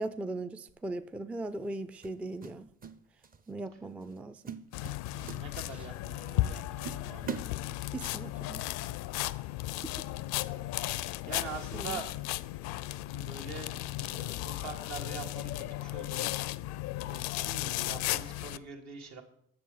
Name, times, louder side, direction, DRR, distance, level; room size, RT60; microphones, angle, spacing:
voice 1, 0.0-2.7 3.5-4.6 7.9-8.7 11.7-12.0, right 2 dB, 5° right, 0.3 m, -38 dB
sound 1, 0.7-0.9 2.0-3.0 3.2-3.5 4.0-4.2 4.5-6.0 6.4-6.5 6.8-8.2, right 6 dB, 30° right, 0.7 m, -42 dB
sound 2, 4.7-18.6, left 17 dB, 65° left, 0.4 m, -35 dB
voice 2, 5.2-7.4 10.9-12.1 13.1-16.3 17.1-19.2, right 5 dB, 65° right, 1.6 m, -44 dB
7.7 x 6.3 x 4.9 m
hypercardioid pair, 70°, 30 cm